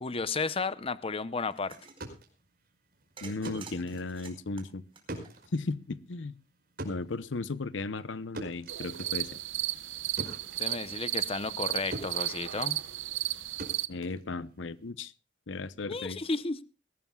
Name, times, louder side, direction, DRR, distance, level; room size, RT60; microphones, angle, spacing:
voice 1, 0.0-1.7 10.6-12.8 15.9-16.6, left 4 dB, 30° left, 0.8 m, -33 dB
sound 1, 1.5-2.0 3.2-5.7, right 4 dB, 30° right, 4.8 m, -49 dB
sound 2, 1.9-11.7 11.9-14.9, right 1 dB, 55° right, 5.0 m, -45 dB
voice 2, 3.2-4.8 5.5-6.4 6.8-9.3 13.9-15.1 15.5-16.2, left 3 dB, 75° left, 0.8 m, -35 dB
sound 3, 8.7-13.9, right 14 dB, 90° right, 0.9 m, -34 dB
21.0 x 18.5 x 2.3 m
head